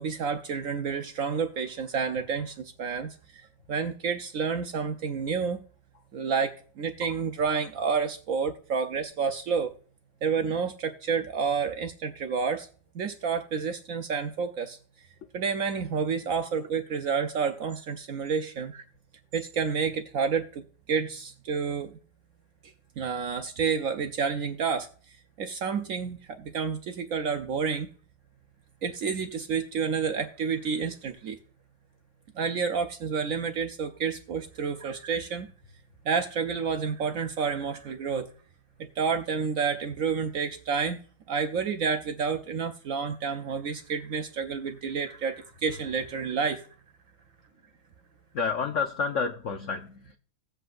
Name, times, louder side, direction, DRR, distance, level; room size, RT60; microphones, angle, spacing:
voice 1, 0.0-5.6 6.1-9.7 10.2-12.7 12.9-14.8 15.3-18.8 19.3-22.0 23.0-27.9 28.8-31.4 32.3-35.5 36.0-38.3 38.8-41.0 41.3-46.7, right 6 dB, 75° right, 0.7 m, -29 dB
voice 2, 48.3-50.2, left 5 dB, 85° left, 0.6 m, -30 dB
16.5 x 7.9 x 2.5 m
omnidirectional pair, 2.1 m